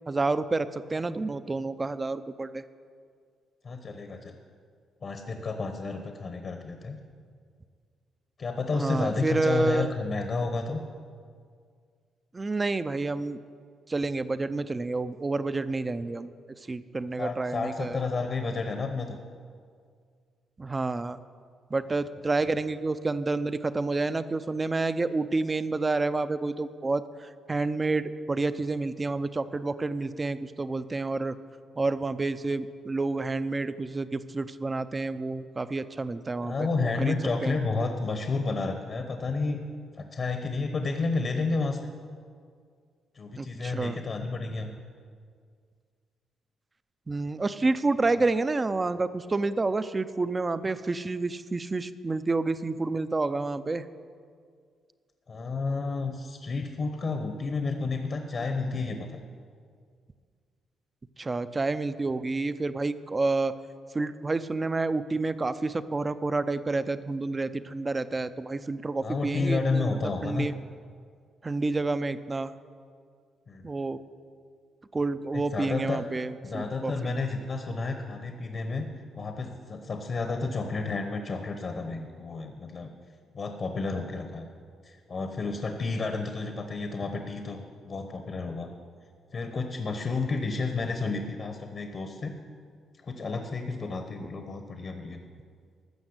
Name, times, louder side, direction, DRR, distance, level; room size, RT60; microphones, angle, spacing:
voice 1, 0.1-2.6 8.7-9.9 12.3-13.4 13.9-16.3 16.7-18.0 20.6-21.2 21.7-31.4 31.8-37.1 37.4-37.6 43.4-44.0 47.1-53.8 61.2-63.5 63.9-70.0 70.2-70.5 71.4-72.5 73.6-74.0 74.9-77.1, right 3 dB, 25° right, 13 dB, 0.5 m, -29 dB
voice 2, 3.6-4.4 5.0-7.0 8.4-10.8 17.2-19.2 36.4-39.6 39.9-41.8 43.1-44.8 48.1-48.2 55.3-59.2 69.0-70.5 73.5-73.7 75.3-76.0 76.4-78.9 79.1-82.9 83.3-84.5 84.8-88.7 89.3-92.4 93.0-95.2, left 3 dB, 45° left, 6 dB, 1.0 m, -31 dB
13.5 x 6.4 x 7.9 m, 2.1 s
cardioid pair, 90°, 0 cm